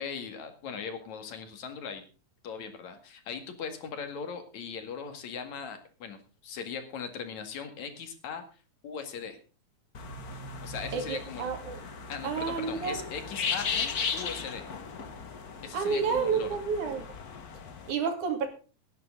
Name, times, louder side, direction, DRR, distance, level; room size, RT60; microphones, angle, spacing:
voice 1, 0.0-2.0 2.4-8.4 8.8-9.4 10.6-11.5 12.1-14.7 15.6-16.5, left 6 dB, 70° left, 7 dB, 3.3 m, -39 dB
sound 1, 9.9-17.9, left 5 dB, 45° left, 1.3 m, -37 dB
voice 2, 10.9-11.8 12.2-13.0 15.7-17.1 17.9-18.5, right 5 dB, 80° right, 5 dB, 3.9 m, -30 dB
17.5 x 11.0 x 3.8 m, 0.35 s
omnidirectional pair, 3.4 m